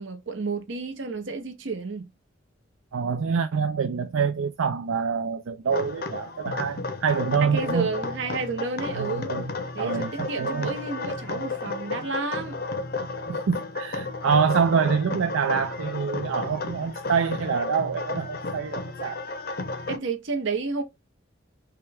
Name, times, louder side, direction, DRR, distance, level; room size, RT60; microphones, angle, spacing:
voice 1, 0.0-2.1 7.4-9.3 9.7-12.6 19.9-20.8, right 4 dB, 70° right, 0.8 m, -31 dB
voice 2, 2.9-7.9 8.9-9.5 9.8-10.7 13.3-19.2, right 6 dB, 85° right, 0.4 m, -26 dB
sound 1, 5.7-20.0, left 3 dB, 50° left, 0.6 m, -33 dB
5.6 x 2.2 x 3.4 m
head